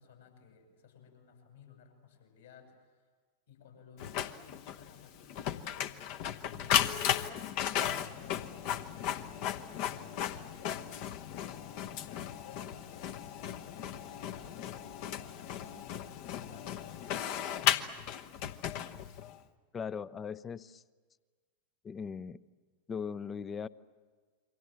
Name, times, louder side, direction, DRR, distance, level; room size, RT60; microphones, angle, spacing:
voice 1, 0.0-3.0 3.5-10.6 11.2-15.1 15.4-18.0, left 6 dB, 65° left, 3 dB, 7.6 m, -57 dB
Printer, 4.0-19.4, left 10 dB, 45° left, 1.1 m, -35 dB
voice 2, 19.7-20.8 21.8-22.4 22.9-23.7, left 6 dB, 20° left, 19 dB, 0.7 m, -39 dB
28.5 x 24.0 x 7.7 m, 1.5 s
figure-of-eight pair, 90°, 0 cm